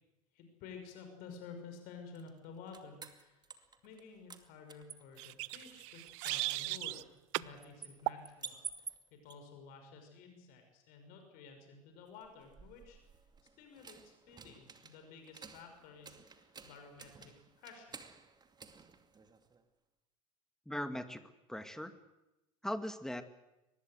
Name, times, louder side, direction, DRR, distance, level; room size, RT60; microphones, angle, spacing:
voice 1, 0.3-3.4 3.8-8.6 9.1-13.0 13.6-18.0, left 5 dB, 55° left, 5 dB, 5.9 m, -53 dB
sound 1, 2.1-4.0 4.3-9.3 12.1-19.6, right 6 dB, 25° right, 2.5 m, -52 dB
sound 2, 5.2-7.0 7.3-7.5 8.1-8.3, right 23 dB, 60° right, 0.7 m, -37 dB
voice 2, 20.7-21.2 21.5-21.9 22.6-23.2, left 1 dB, 5° left, 9 dB, 2.2 m, -39 dB
23.5 x 20.0 x 8.0 m, 0.97 s
hypercardioid pair, 75°, 18 cm